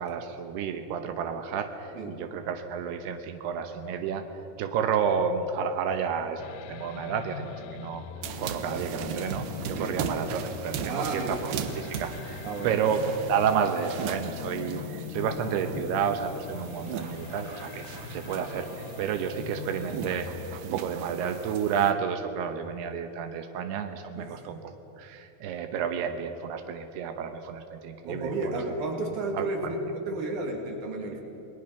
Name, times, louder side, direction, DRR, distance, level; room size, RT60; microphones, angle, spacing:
voice 1, 0.0-4.3 4.6-8.0 8.4-20.3 20.6-24.6 25.0-28.6 29.3-29.5, right 7 dB, 90° right, 7 dB, 3.1 m, -31 dB
sound 1, 6.4-20.6, left 10 dB, 80° left, 2.4 m, -41 dB
sound 2, 8.2-21.9, right 7 dB, 70° right, 2.1 m, -38 dB
voice 2, 10.9-11.4 12.4-12.8 15.7-15.8 24.2-24.6 28.0-31.2, right 2 dB, 55° right, 1 dB, 3.8 m, -32 dB
29.0 x 20.0 x 5.9 m, 3.0 s
omnidirectional pair, 4.5 m